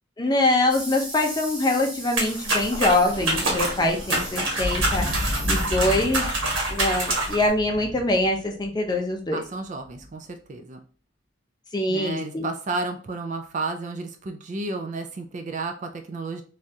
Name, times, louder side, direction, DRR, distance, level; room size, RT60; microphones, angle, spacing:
voice 1, 0.2-5.0 5.5-6.3 6.7-9.4 11.7-12.4, left 2 dB, 20° left, 2 dB, 0.5 m, -23 dB
sound 1, 0.7-6.1, right 1 dB, 5° right, 0.8 m, -38 dB
sound 2, 2.2-7.5, right 2 dB, 90° right, 1.3 m, -26 dB
Thunder, 2.5-8.9 9.9-10.1, left 1 dB, 65° right, 1.5 m, -32 dB
voice 2, 9.3-10.8 11.9-16.4, right 3 dB, 40° right, 5 dB, 0.3 m, -32 dB
3.3 x 2.4 x 2.7 m, 0.41 s
head